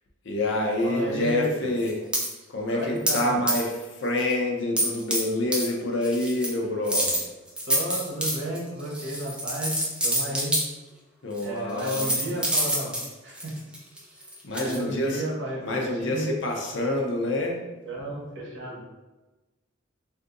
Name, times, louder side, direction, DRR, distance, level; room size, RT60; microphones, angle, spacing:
voice 1, 0.2-2.0 2.5-7.3 11.2-12.1 14.4-15.2 15.6-17.6, left 1 dB, 60° left, 0 dB, 0.6 m, -27 dB
voice 2, 0.8-1.5 2.7-3.4 7.7-10.6 11.4-12.9 13.2-13.6 14.5-16.3 17.9-18.8, right 1 dB, 55° right, -4 dB, 1.0 m, -33 dB
sound 1, 1.8-2.3 3.1-3.2 3.5-3.8 4.2-4.3 4.8-5.2 5.5-5.7 6.0-6.5 6.8-10.6 11.4-11.5 11.8-14.8, right 1 dB, 5° right, 0.4 m, -26 dB
2.6 x 2.5 x 3.7 m, 1.1 s
head